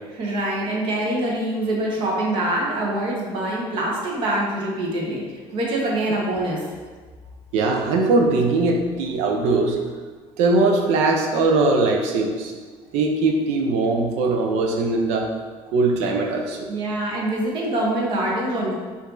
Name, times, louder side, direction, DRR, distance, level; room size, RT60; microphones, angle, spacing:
voice 1, 0.1-6.6 16.7-18.7, right 1 dB, 45° right, -3 dB, 1.0 m, -24 dB
voice 2, 7.5-9.8 10.4-12.5 12.9-15.3 15.7-16.7, right 3 dB, 75° right, 2 dB, 0.7 m, -20 dB
5.2 x 2.6 x 3.8 m, 1.5 s
cardioid pair, 175°, 11 cm